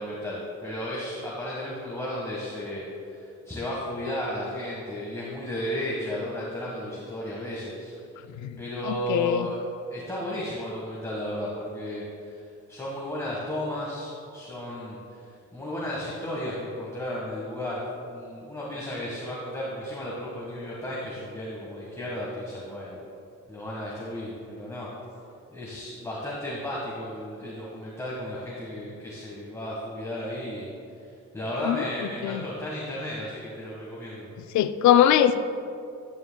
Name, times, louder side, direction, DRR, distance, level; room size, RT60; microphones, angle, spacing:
voice 1, 0.0-2.9 3.4-7.9 8.6-9.6 9.9-12.4 12.7-15.2 15.5-17.8 18.1-23.0 23.5-24.9 25.5-30.7 31.3-34.3, equal, 10° left, -6 dB, 1.5 m, -34 dB
voice 2, 8.8-9.5 31.6-31.8 32.2-32.4 34.5-35.4, left 10 dB, 70° left, 12 dB, 0.4 m, -21 dB
10.5 x 9.2 x 2.3 m, 2.6 s
cardioid pair, 90°, 30 cm